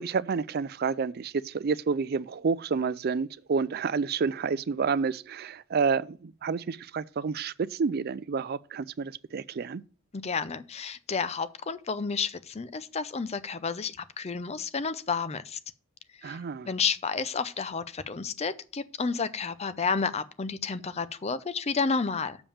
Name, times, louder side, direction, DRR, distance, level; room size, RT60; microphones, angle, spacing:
voice 1, 0.0-9.8 16.2-16.7, right 5 dB, 50° right, 0.4 m, -29 dB
voice 2, 10.1-15.6 16.2-16.4 16.7-22.4, left 5 dB, 35° left, 0.6 m, -31 dB
7.1 x 5.2 x 7.0 m
head